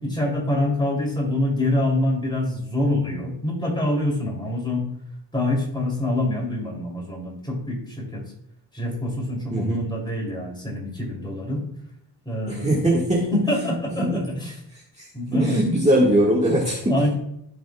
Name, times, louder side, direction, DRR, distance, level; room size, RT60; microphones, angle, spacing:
voice 1, 0.0-4.9 5.3-8.2 8.7-11.7 12.2-12.8 13.3-14.5 15.1-15.6 16.9-17.1, left 1 dB, 10° left, -1 dB, 3.1 m, -25 dB
voice 2, 9.5-9.9 12.5-14.2 15.0-15.1 15.3-17.1, right 1 dB, 15° right, -5 dB, 1.7 m, -21 dB
14.5 x 5.1 x 2.3 m, 0.75 s
cardioid pair, 110°, 42 cm